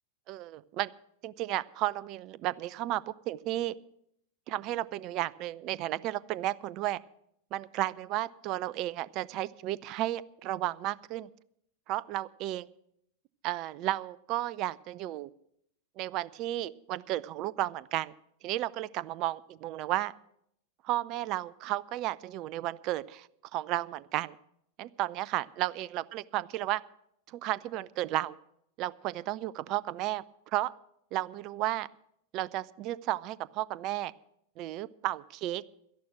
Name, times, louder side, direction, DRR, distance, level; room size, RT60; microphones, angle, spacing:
voice 1, 0.3-0.9 1.2-3.8 4.5-7.0 7.5-11.3 11.9-12.7 13.4-15.3 16.0-18.1 18.4-20.1 20.8-24.3 24.8-26.8 27.3-28.4 28.8-30.2 30.5-30.7 31.1-31.9 32.3-34.1 34.6-35.6, right 15 dB, 40° right, 20 dB, 0.5 m, -33 dB
12.5 x 11.5 x 6.1 m, 0.73 s
figure-of-eight pair, 90°, 0 cm